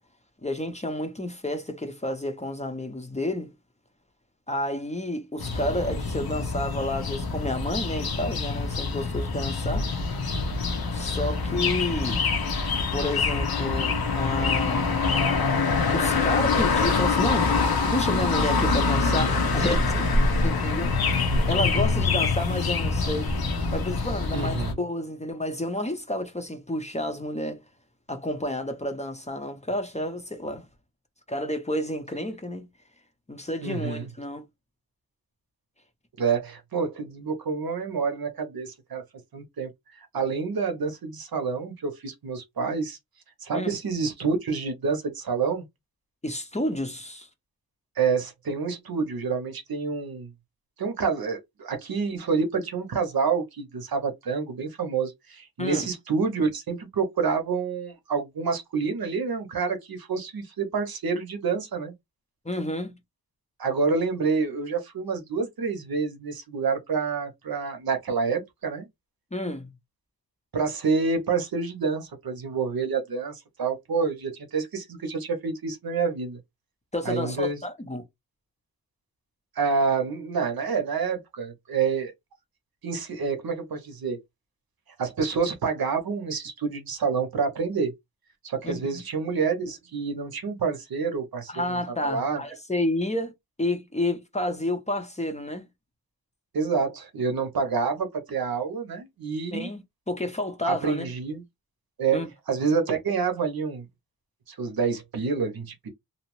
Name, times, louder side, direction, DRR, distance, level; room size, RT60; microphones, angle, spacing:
voice 1, 0.4-3.5 4.5-9.9 10.9-12.5 12.9-14.9 15.9-17.5 17.9-20.1 20.4-20.9 21.5-23.3 23.7-27.6 28.1-30.7 31.3-32.7 33.3-34.4 43.5-43.7 46.2-47.3 55.6-55.8 62.4-63.0 69.3-69.7 76.9-78.0 88.6-89.0 91.5-93.3 93.6-95.6 99.5-101.0 102.1-102.3, left 1 dB, 20° left, 0.5 m, -30 dB
sound 1, 5.4-24.7, left 4 dB, 75° left, 0.7 m, -25 dB
voice 2, 21.1-21.8 24.3-24.8 33.6-34.1 36.2-39.0 39.3-39.7 40.1-43.0 43.4-45.7 48.0-50.3 50.8-61.9 63.6-68.9 70.5-76.4 77.0-77.6 79.6-82.1 82.8-84.2 85.0-87.9 88.4-92.4 96.5-99.7 100.7-101.4 102.0-102.2 102.5-103.9 104.5-105.9, right 5 dB, 70° right, 0.7 m, -28 dB
2.7 x 2.0 x 2.9 m
wide cardioid pair, 95°, 37 cm